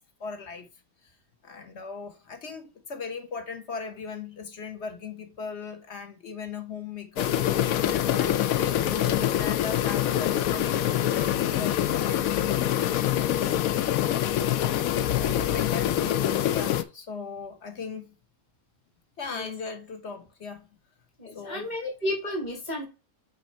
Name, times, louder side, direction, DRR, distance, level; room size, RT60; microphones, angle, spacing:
voice 1, 0.2-0.7 1.4-7.4 7.8-13.1 13.3-13.6 15.1-18.1 19.2-20.7 21.3-21.7, left 5 dB, 50° left, 1.3 m, -38 dB
sound 1, 7.2-16.8, left 11 dB, 75° left, 1.0 m, -25 dB
voice 2, 21.2-22.9, left 1 dB, 30° left, 2.3 m, -32 dB
6.2 x 4.4 x 4.3 m
omnidirectional pair, 1.5 m